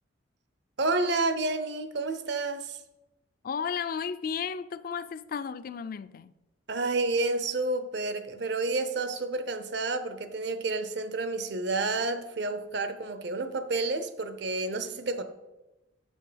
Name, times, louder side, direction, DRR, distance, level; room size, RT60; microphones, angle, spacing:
voice 1, 0.8-2.8 6.7-15.2, right 3 dB, 60° right, 0.7 m, -30 dB
voice 2, 3.4-6.4, left 6 dB, 50° left, 0.3 m, -34 dB
7.4 x 5.5 x 5.1 m
head